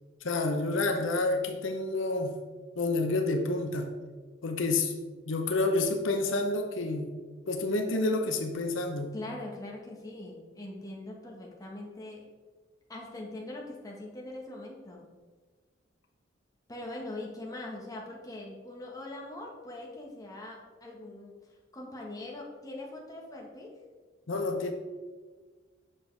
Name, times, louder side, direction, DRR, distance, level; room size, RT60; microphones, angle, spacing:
voice 1, 0.2-2.4 2.8-3.9 4.4-4.9 5.3-7.1 7.5-9.1 24.3-24.7, left 2 dB, 85° left, 4 dB, 0.8 m, -29 dB
voice 2, 9.1-12.2 12.9-15.1 16.7-21.3 21.7-23.8, left 2 dB, 20° left, -2 dB, 1.4 m, -42 dB
7.7 x 6.5 x 3.3 m, 1.4 s
head